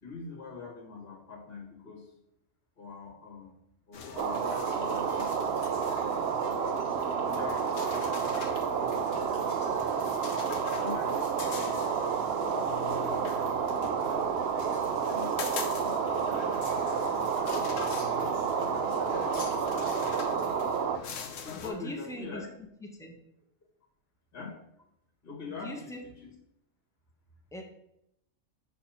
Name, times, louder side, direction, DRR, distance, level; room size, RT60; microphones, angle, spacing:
voice 1, 0.0-2.1 2.8-3.6 3.9-5.8 6.6-6.8 7.3-9.7 10.8-11.8 12.4-13.3 13.7-15.4 15.8-16.7 17.1-17.9 18.1-20.1 21.4-22.5 24.3-24.6 25.2-26.3, left 4 dB, 50° left, -1 dB, 1.9 m, -45 dB
sound 1, 3.9-21.7, left 6 dB, 85° left, 1.2 m, -41 dB
sound 2, 4.2-21.0, right 7 dB, 60° right, 0.8 m, -30 dB
voice 2, 21.5-22.4 22.8-23.2 25.6-26.0 27.5-27.6, left 1 dB, 5° left, 2 dB, 0.9 m, -41 dB
6.8 x 4.3 x 5.7 m, 0.78 s
omnidirectional pair, 1.3 m